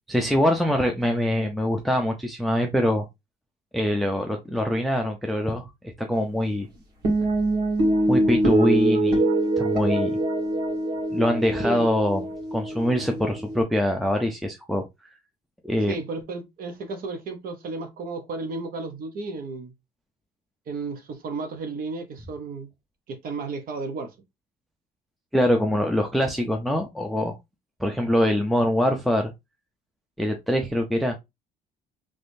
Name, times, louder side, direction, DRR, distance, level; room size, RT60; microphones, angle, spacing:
voice 1, 0.1-3.1 3.7-6.7 8.1-9.2 9.6-10.2 11.1-14.9 15.6-15.9 25.3-27.4 27.8-29.3 30.2-31.2, equal, ahead, 0.5 m, -24 dB
sound 1, 7.0-13.6, right 1 dB, 75° right, 1.6 m, -24 dB
voice 2, 11.6-11.9 15.8-19.7 20.7-22.7 23.1-24.1, right 3 dB, 60° right, 0.8 m, -33 dB
3.4 x 3.2 x 2.6 m
cardioid pair, 110°, 17 cm